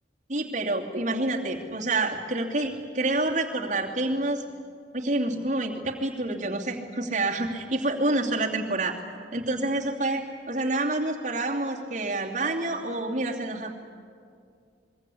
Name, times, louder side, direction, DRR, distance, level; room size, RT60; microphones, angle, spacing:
voice 1, 0.3-4.4 4.9-8.9 9.3-13.8, right 2 dB, 40° right, -1 dB, 2.8 m, -28 dB
26.5 x 22.5 x 8.5 m, 2.3 s
head